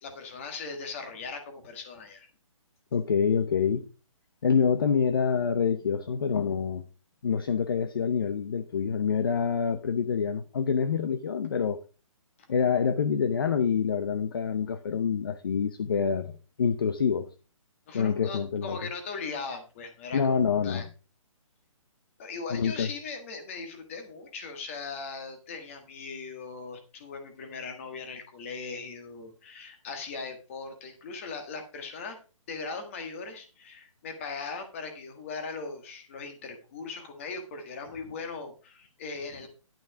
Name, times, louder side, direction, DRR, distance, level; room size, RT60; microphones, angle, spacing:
voice 1, 0.0-2.3 17.9-20.9 22.2-32.2 32.5-39.5, left 4 dB, 25° left, 6 dB, 1.6 m, -39 dB
voice 2, 2.9-3.8 4.4-6.8 7.2-11.8 12.5-16.3 16.6-17.3 17.9-18.8 20.1-20.8 22.5-22.9, left 6 dB, 40° left, 11 dB, 0.7 m, -26 dB
11.5 x 6.1 x 4.9 m, 0.35 s
hypercardioid pair, 175°, 18 cm